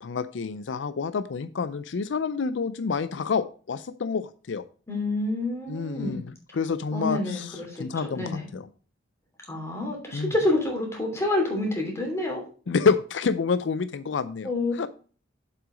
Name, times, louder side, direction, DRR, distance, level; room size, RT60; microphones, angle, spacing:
voice 1, 0.0-4.6 5.7-6.2 6.5-8.7 10.1-10.3 12.7-14.9, left 5 dB, 75° left, 14 dB, 0.5 m, -28 dB
voice 2, 4.9-6.2 6.9-7.9 8.1-8.5 9.5-12.4 14.4-14.7, left 2 dB, 15° left, 0 dB, 2.9 m, -28 dB
7.6 x 5.8 x 5.0 m, 0.39 s
head